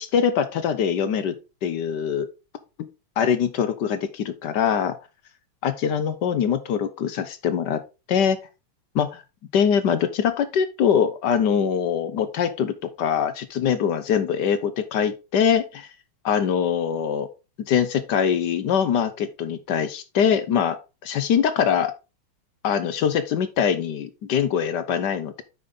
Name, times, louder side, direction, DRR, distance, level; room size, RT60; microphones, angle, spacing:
voice 1, 0.0-1.4 1.6-2.3 2.8-2.9 3.2-4.9 5.6-7.8 8.1-8.4 8.9-9.2 9.5-15.9 16.2-17.3 17.7-20.8 21.0-21.9 22.6-25.4, left 7 dB, 65° left, 12 dB, 1.2 m, -23 dB
8.7 x 5.3 x 3.9 m, 0.28 s
omnidirectional pair, 2.4 m